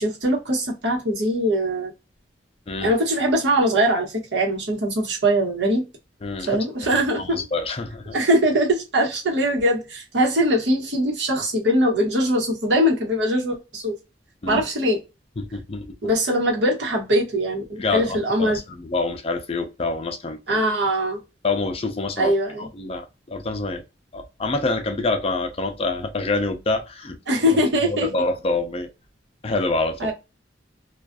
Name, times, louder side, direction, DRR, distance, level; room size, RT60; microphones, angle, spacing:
voice 1, 0.0-1.9 2.8-5.8 6.5-7.5 8.1-13.9 14.5-15.0 16.0-18.6 20.5-21.2 22.2-22.7 27.3-28.1 30.0-30.1, equal, 80° right, 1.0 m, -21 dB
voice 2, 6.2-6.6 7.2-8.2 14.4-14.6 15.4-16.0 17.8-20.6 21.4-22.3 22.6-23.8 24.1-27.2 27.8-28.9 29.4-30.1, left 3 dB, 35° left, 0.4 m, -26 dB
2.4 x 2.3 x 2.2 m
head